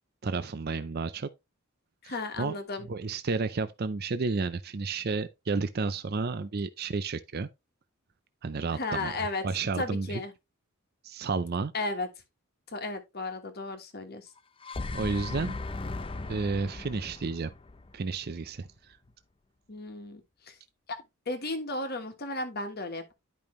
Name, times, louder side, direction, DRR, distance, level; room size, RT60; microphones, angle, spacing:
voice 1, 0.2-1.3 2.0-2.5 2.9-7.5 8.4-9.1 9.4-10.2 11.0-11.7 14.9-15.6 16.3-17.5 17.9-18.7, right 4 dB, 45° right, 0.5 m, -31 dB
voice 2, 2.0-2.9 8.7-9.5 9.8-10.3 11.7-12.1 12.7-14.3 19.7-20.6 20.9-21.0 21.3-23.1, left 2 dB, 45° left, 1.3 m, -34 dB
sound 1, 14.4-18.6, left 3 dB, 25° left, 0.5 m, -37 dB
10.5 x 5.3 x 3.1 m
head